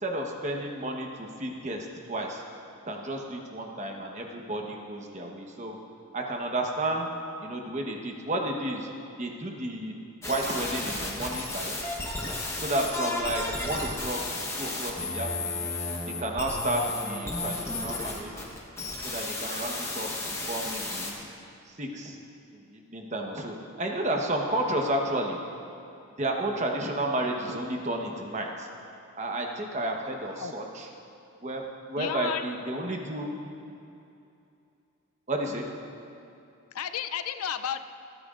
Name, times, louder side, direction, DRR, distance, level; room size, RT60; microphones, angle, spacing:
voice 1, 0.0-2.4 2.9-5.8 6.1-7.1 7.4-8.9 9.2-10.0 10.2-11.8 12.6-14.2 14.6-15.7 16.1-18.3 19.0-21.3 21.6-22.2 22.5-25.4 26.2-28.7 29.2-30.9 31.4-33.3 35.3-35.7, right 1 dB, 30° right, 1 dB, 1.1 m, -32 dB
sound 1, 10.2-21.1, left 2 dB, 10° left, 1.1 m, -33 dB
voice 2, 32.0-32.4 36.7-37.8, left 8 dB, 80° left, 11 dB, 0.5 m, -32 dB
25.5 x 9.3 x 2.5 m, 2.6 s
head